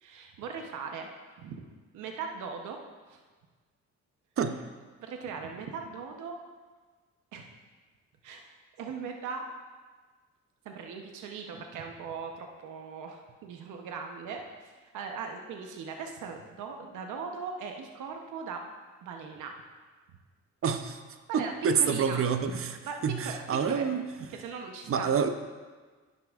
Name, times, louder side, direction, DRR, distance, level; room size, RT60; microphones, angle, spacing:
voice 1, 0.0-1.1 1.4-1.6 1.9-2.8 3.1-3.2 5.0-6.4 7.3-7.5 8.2-8.5 8.8-9.4 10.6-18.6 19.0-19.6 21.3-22.2 22.6-23.8 24.3-25.3, right 5 dB, 80° right, 3 dB, 0.9 m, -39 dB
voice 2, 20.6-21.0 21.3-22.7 23.0-24.0 24.9-25.3, right 6 dB, 45° right, 9 dB, 0.7 m, -27 dB
10.5 x 9.7 x 2.4 m, 1.4 s
cardioid pair, 90°, 30 cm